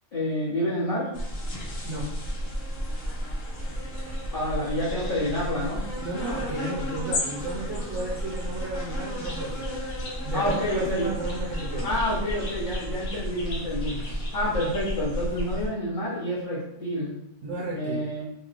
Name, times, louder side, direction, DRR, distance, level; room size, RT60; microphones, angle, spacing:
voice 1, 0.1-1.1 4.3-5.8 10.3-11.2 11.8-17.1 17.7-18.2, left 1 dB, 45° left, -11 dB, 1.1 m, -28 dB
sound 1, 1.1-15.7, equal, 90° left, 1.2 m, -32 dB
voice 2, 6.0-9.7 10.2-11.9 13.9-14.2 17.4-18.2, right 2 dB, 65° right, -5 dB, 0.9 m, -33 dB
3.0 x 3.0 x 2.5 m, 0.81 s
omnidirectional pair, 1.3 m